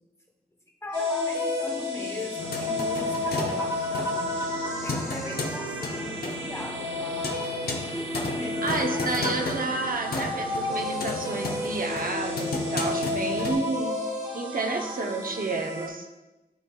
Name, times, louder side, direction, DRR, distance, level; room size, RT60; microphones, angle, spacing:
voice 1, 0.8-4.5 4.8-9.3, left 1 dB, 15° left, 1 dB, 1.1 m, -39 dB
sound 1, 0.9-15.9, left 2 dB, 25° right, 1.5 m, -31 dB
sound 2, 2.4-13.5, left 2 dB, 65° left, 1.0 m, -34 dB
Motorcycle, 3.4-13.2, left 2 dB, 35° left, 0.7 m, -47 dB
voice 2, 8.6-13.9 14.3-16.1, right 3 dB, 55° right, 3 dB, 0.8 m, -30 dB
12.0 x 4.6 x 2.3 m, 1.0 s
wide cardioid pair, 120°, 17 cm